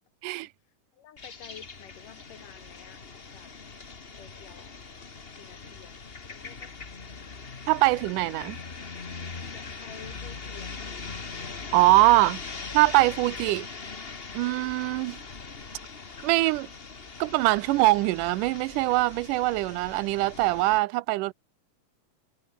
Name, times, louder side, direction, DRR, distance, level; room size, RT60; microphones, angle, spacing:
voice 1, 0.9-3.0 3.3-3.5 4.2-4.7 5.3-6.0 6.3-6.8 9.5-10.8, left 9 dB, 75° left, 4.0 m, -50 dB
sound 1, 1.2-20.8, left 4 dB, 35° left, 0.8 m, -41 dB
voice 2, 7.7-8.6 11.7-12.4 12.7-13.7 14.3-15.2 16.2-16.7 17.2-21.3, right 20 dB, 80° right, 2.1 m, -23 dB
omnidirectional pair, 3.8 m